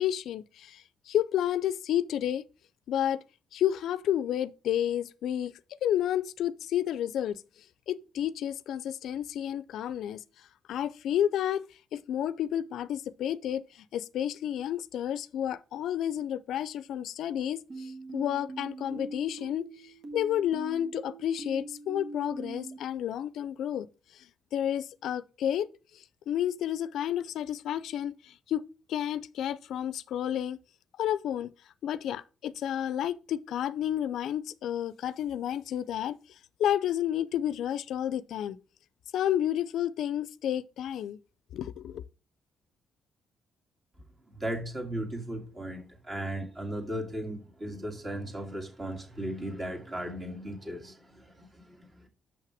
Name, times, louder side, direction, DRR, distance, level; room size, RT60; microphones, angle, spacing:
voice 1, 0.0-2.4 2.9-3.2 3.5-5.5 5.8-7.4 7.9-10.2 10.7-11.6 11.9-19.7 20.1-23.9 24.5-25.7 25.9-28.6 28.9-30.6 31.0-31.5 31.8-36.2 36.6-38.6 39.1-41.2 41.5-42.0, left 10 dB, 75° left, 0.4 m, -31 dB
sound 1, 17.7-22.8, right 3 dB, 60° right, 1.6 m, -43 dB
voice 2, 44.3-52.1, right 1 dB, 30° right, 2.4 m, -37 dB
6.4 x 5.8 x 4.8 m
cardioid pair, 90°, 0 cm